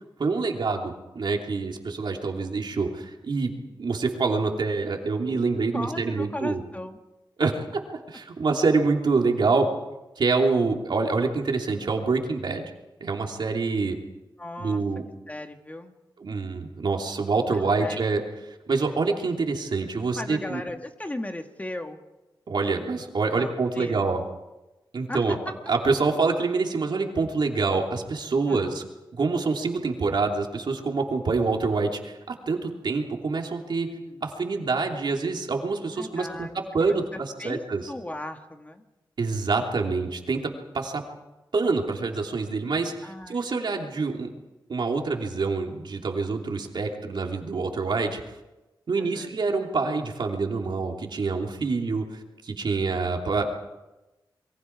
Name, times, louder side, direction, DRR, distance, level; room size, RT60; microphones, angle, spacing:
voice 1, 0.2-3.5 3.8-6.6 7.4-7.5 8.1-9.7 10.2-12.7 13.0-14.0 14.6-15.0 16.2-18.2 18.7-20.6 22.5-24.2 24.9-25.4 25.7-28.8 29.2-33.9 34.2-36.5 36.7-37.8 39.2-41.0 41.5-44.3 44.7-48.2 48.9-52.1 52.4-53.5, right 4 dB, 65° right, 1 dB, 3.2 m, -26 dB
voice 2, 5.7-7.0 14.4-14.8 15.3-15.9 17.5-18.1 20.2-22.0 23.3-24.0 25.1-25.4 28.5-28.8 34.0-34.2 36.0-37.6 37.9-38.8 43.0-43.5 43.8-43.9 48.9-49.4, left 1 dB, 20° left, 5 dB, 1.7 m, -37 dB
28.0 x 23.0 x 4.8 m, 1.0 s
wide cardioid pair, 85°, 8 cm